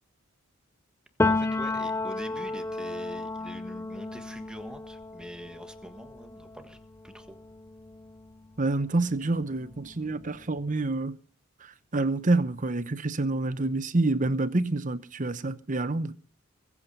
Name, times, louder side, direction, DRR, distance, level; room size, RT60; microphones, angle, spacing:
Piano, 1.2-8.8 9.2-10.7, left 2 dB, 10° left, 0.6 m, -33 dB
voice 1, 1.2-6.8 7.0-7.4, equal, 5° right, 1.6 m, -44 dB
voice 2, 8.6-11.2 11.9-16.1, right 2 dB, 35° right, 0.9 m, -27 dB
22.5 x 8.6 x 5.5 m
head